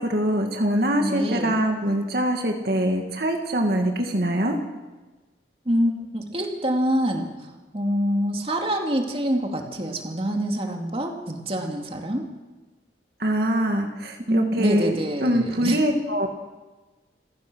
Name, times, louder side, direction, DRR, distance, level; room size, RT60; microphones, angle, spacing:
voice 1, 0.0-4.6 13.2-15.0 15.2-16.3, equal, 55° right, 3 dB, 2.1 m, -23 dB
voice 2, 1.0-1.6 5.7-7.3 7.7-12.3 14.3-15.8, equal, 30° right, 2 dB, 2.5 m, -25 dB
28.0 x 16.0 x 6.3 m, 1.2 s
head